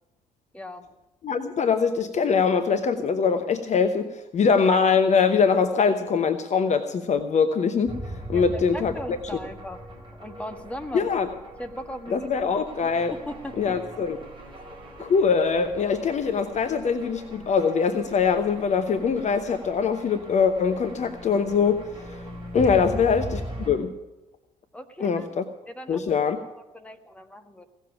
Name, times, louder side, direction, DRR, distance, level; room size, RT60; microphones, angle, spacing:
voice 1, 0.5-0.9 8.3-9.8 10.1-11.2 11.6-12.6 13.1-13.8 22.6-22.8 24.7-25.3 25.7-27.6, left 1 dB, 5° left, 5 dB, 1.7 m, -39 dB
voice 2, 1.2-8.0 8.3-9.2 10.9-11.3 12.1-13.1 13.6-14.2 15.0-22.2 22.5-23.4 23.7-23.9 25.0-25.4 25.9-26.4, left 5 dB, 35° left, 8 dB, 1.0 m, -23 dB
sound 1, 7.9-23.7, equal, 25° right, 4.3 m, -40 dB
17.0 x 7.2 x 9.0 m, 1.0 s
figure-of-eight pair, 50°, 19 cm